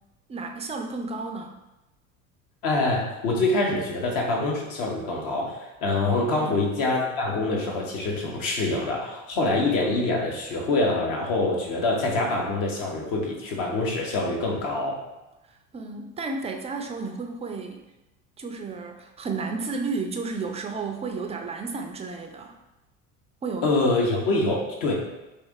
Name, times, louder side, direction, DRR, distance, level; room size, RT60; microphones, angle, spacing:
voice 1, 0.3-1.5 6.4-6.6 15.7-17.8 18.4-22.6 23.4-23.7, right 4 dB, 15° right, 4 dB, 0.4 m, -32 dB
voice 2, 2.6-15.0 23.6-25.0, left 2 dB, 55° left, -1 dB, 1.1 m, -25 dB
3.2 x 2.7 x 3.6 m, 0.98 s
hypercardioid pair, 65°, 40 cm